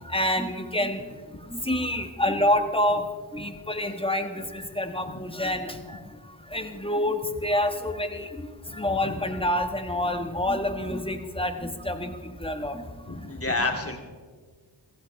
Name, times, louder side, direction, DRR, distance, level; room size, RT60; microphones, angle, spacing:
voice 1, 0.1-1.0 1.5-3.0 3.3-6.0 6.5-8.3 8.7-12.8, left 1 dB, 10° left, 6 dB, 1.5 m, -27 dB
voice 2, 13.1-14.0, left 2 dB, 30° left, 1 dB, 2.7 m, -29 dB
16.5 x 15.5 x 3.5 m, 1.5 s
wide cardioid pair, 65°, 45 cm